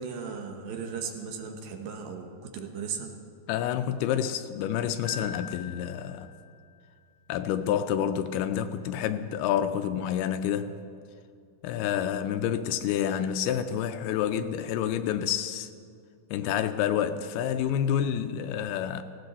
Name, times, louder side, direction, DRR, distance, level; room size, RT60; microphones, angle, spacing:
voice 1, 0.0-3.2, right 6 dB, 70° right, 2.6 m, -36 dB
voice 2, 3.5-6.3 7.3-10.8 11.6-15.7 16.3-19.0, left 9 dB, 80° left, 2.4 m, -28 dB
Keyboard (musical), 5.0-6.9, left 6 dB, 65° left, 3.4 m, -43 dB
18.5 x 16.5 x 4.1 m
omnidirectional pair, 4.7 m